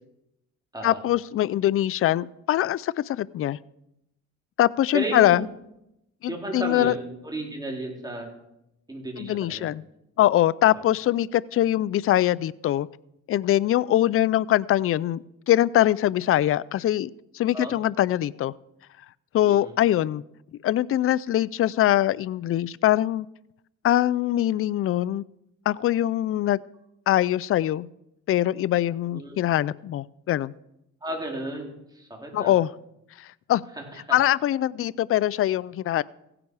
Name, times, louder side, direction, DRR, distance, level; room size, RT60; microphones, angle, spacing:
voice 1, 0.8-3.6 4.6-5.4 6.2-6.9 9.2-9.8 10.2-12.9 13.3-18.5 19.3-20.2 20.6-23.3 23.8-25.2 25.7-26.6 27.1-27.9 28.3-30.5 32.3-32.7 33.2-33.6 34.1-36.0, left 13 dB, 50° left, 0.4 m, -23 dB
voice 2, 4.9-5.4 6.3-8.3 8.9-9.7 10.7-10.8 17.5-17.7 19.5-19.7 29.1-29.4 31.0-32.5 33.8-34.2, right 2 dB, 15° right, 3.8 m, -33 dB
16.0 x 9.9 x 4.8 m
cardioid pair, 90°, 30 cm